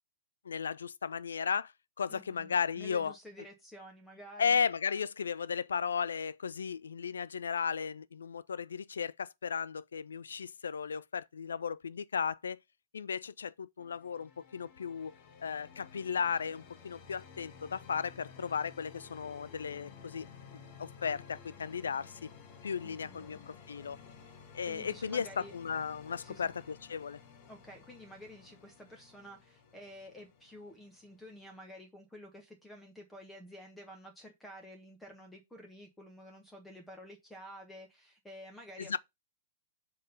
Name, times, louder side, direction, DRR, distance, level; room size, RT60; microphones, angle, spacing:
voice 1, 0.5-1.7 2.0-3.2 4.4-12.6 12.9-15.1 15.4-20.3 20.5-22.3 22.6-24.0 24.5-27.2 38.8-39.0, left 6 dB, 70° left, 0.3 m, -35 dB
voice 2, 2.1-4.6 22.8-23.4 24.2-24.3 24.7-25.5 26.2-26.5 27.5-39.0, equal, 5° left, 1.2 m, -51 dB
sound 1, 13.8-31.5, left 6 dB, 45° left, 1.4 m, -54 dB
5.4 x 3.8 x 5.3 m
figure-of-eight pair, 105°, 0 cm